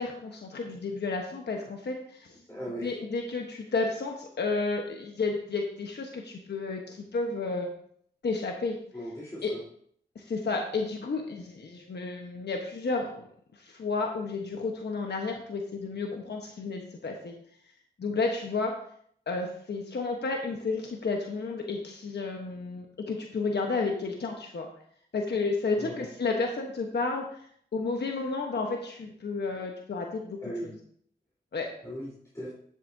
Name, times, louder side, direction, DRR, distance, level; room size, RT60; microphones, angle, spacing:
voice 1, 0.0-2.4 2.8-7.7 8.2-8.8 9.4-9.5 10.1-13.2 13.5-17.3 18.0-18.7 19.3-24.7 25.1-27.4 27.7-30.7 31.5-31.7, left 3 dB, 70° left, 2 dB, 1.2 m, -32 dB
voice 2, 2.5-2.9 8.9-9.6 25.7-26.1 30.4-30.7 31.8-32.5, equal, 15° left, -7 dB, 3.9 m, -38 dB
11.0 x 7.6 x 2.7 m, 0.64 s
cardioid pair, 45°, 18 cm